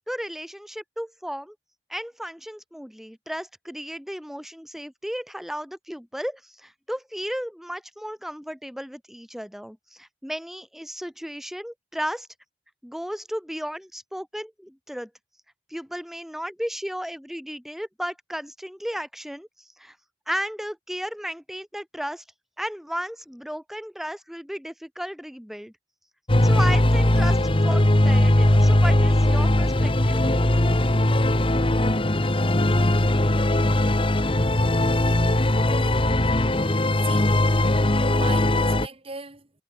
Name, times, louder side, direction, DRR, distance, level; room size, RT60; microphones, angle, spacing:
voice 1, 0.1-1.6 1.9-12.3 12.8-15.1 15.7-19.5 19.8-20.0 20.3-22.2 22.6-25.7 26.4-30.2, equal, ahead, 2.3 m, -34 dB
sound 1, 26.3-38.9, left 1 dB, 30° left, 1.4 m, -20 dB
voice 2, 34.7-35.2 35.7-36.1 37.0-37.4 38.1-39.5, right 4 dB, 35° right, 3.8 m, -40 dB
head